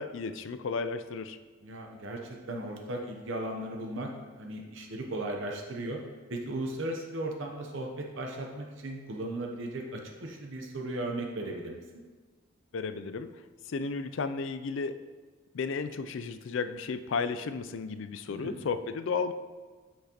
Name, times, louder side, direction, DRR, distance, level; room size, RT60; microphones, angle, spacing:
voice 1, 0.0-1.4 12.7-13.4 13.7-15.0 15.5-19.3, left 4 dB, 60° left, 10 dB, 0.4 m, -33 dB
voice 2, 1.6-4.1 4.4-6.0 6.3-11.8 18.3-18.7, right 1 dB, 60° right, 1 dB, 0.7 m, -36 dB
8.3 x 6.0 x 2.9 m, 1.4 s
head